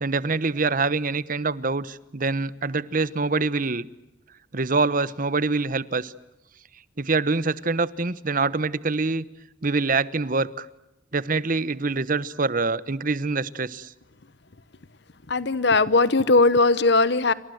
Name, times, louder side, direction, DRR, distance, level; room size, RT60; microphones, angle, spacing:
voice 1, 0.0-3.8 4.5-6.1 7.0-9.2 9.6-10.7 11.1-13.9, right 3 dB, 45° right, 1.0 m, -25 dB
voice 2, 15.3-17.3, left 3 dB, 60° left, 1.0 m, -19 dB
28.5 x 25.5 x 7.9 m
head